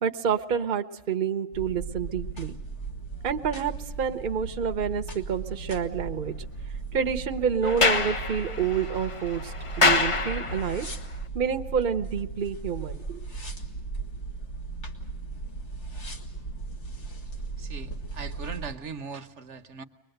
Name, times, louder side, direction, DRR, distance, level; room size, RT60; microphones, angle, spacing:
voice 1, 0.0-2.5 3.2-6.3 6.9-10.9 11.3-13.3, right 7 dB, 45° right, 6 dB, 1.0 m, -28 dB
sound 1, 1.5-18.7, right 3 dB, 60° left, 2.3 m, -37 dB
Sliding door, 7.6-10.9, left 4 dB, 30° left, 0.8 m, -26 dB
voice 2, 17.6-19.8, right 5 dB, 65° right, 10 dB, 1.3 m, -39 dB
23.0 x 21.5 x 7.9 m, 1.0 s
omnidirectional pair, 1.3 m